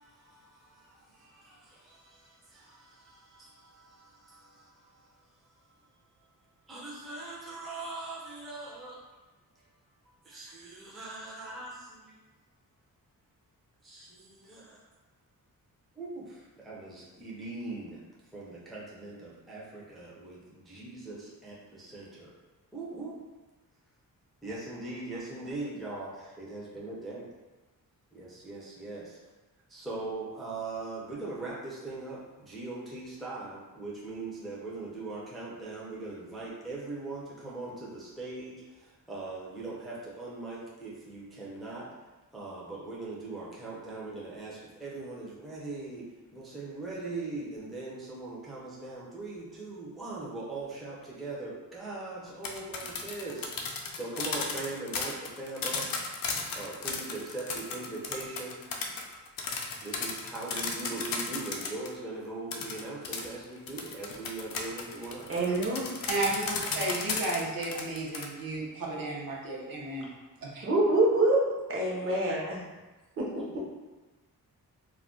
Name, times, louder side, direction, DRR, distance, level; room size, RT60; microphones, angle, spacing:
voice 1, 0.0-5.1 6.7-9.0 10.1-12.2 13.8-14.8 16.0-18.0 18.3-22.3 22.7-23.2 24.4-27.2 28.1-29.2 29.7-41.9 42.3-55.9 56.3-58.6 59.8-65.3 73.5-73.6, right 3 dB, ahead, -6 dB, 0.4 m, -41 dB
sound 1, 52.3-61.9 62.5-68.3, left 4 dB, 70° left, 0.5 m, -35 dB
voice 2, 65.3-65.9 70.6-71.4 71.7-72.6 73.2-73.4, right 2 dB, 40° right, -4 dB, 0.7 m, -26 dB
voice 3, 66.1-70.1 70.4-70.7, right 2 dB, 70° right, -4 dB, 0.7 m, -33 dB
2.3 x 2.1 x 3.6 m, 1.2 s
wide cardioid pair, 155°, 36 cm